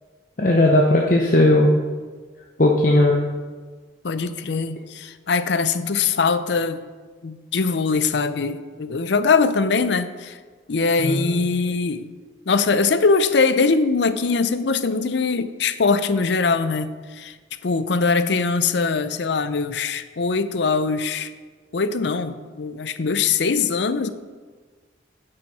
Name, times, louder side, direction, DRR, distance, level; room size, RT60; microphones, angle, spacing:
voice 1, 0.4-1.7 2.6-3.2 11.0-11.4, left 1 dB, 45° left, 0 dB, 0.8 m, -17 dB
voice 2, 4.0-6.8 7.2-10.4 10.7-12.0 12.5-17.4 17.6-21.3 21.7-24.1, left 4 dB, 75° left, 12 dB, 0.6 m, -22 dB
9.5 x 7.7 x 4.7 m, 1.5 s
head